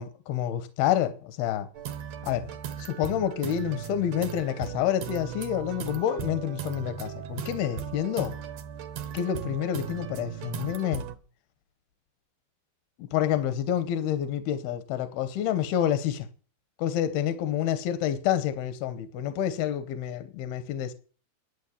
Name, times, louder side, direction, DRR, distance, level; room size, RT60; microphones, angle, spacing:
voice 1, 0.0-1.7 2.2-2.5 2.8-8.3 9.1-11.0 13.0-16.3 16.8-20.9, left 10 dB, 85° left, 2.8 m, -28 dB
sound 1, 1.7-11.2, right 9 dB, 65° right, 1.8 m, -37 dB
11.5 x 8.0 x 8.6 m
omnidirectional pair, 4.4 m